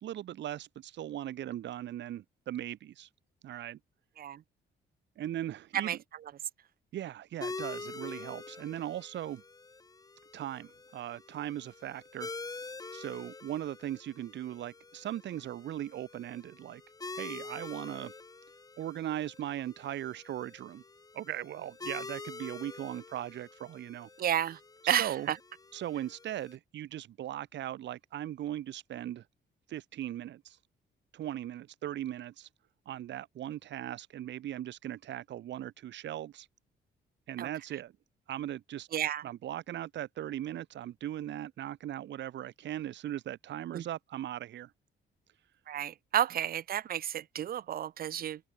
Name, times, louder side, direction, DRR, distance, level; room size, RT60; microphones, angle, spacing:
voice 1, 0.0-3.1 3.4-3.8 5.2-6.0 6.9-9.4 10.3-16.8 17.1-18.1 18.8-20.8 21.1-24.1 24.8-25.3 25.7-29.2 29.7-30.6 31.1-32.5 32.9-36.5 37.3-37.9 38.3-38.9 39.2-44.7, right 12 dB, 65° right, 0.9 m, -39 dB
sound 1, 7.4-26.6, left 3 dB, 20° left, 0.7 m, -46 dB
voice 2, 24.2-24.6 24.9-25.1 37.4-37.5 38.9-39.2 43.7-43.8 45.7-48.4, right 10 dB, 50° right, 0.5 m, -31 dB
cardioid pair, 90°, 20 cm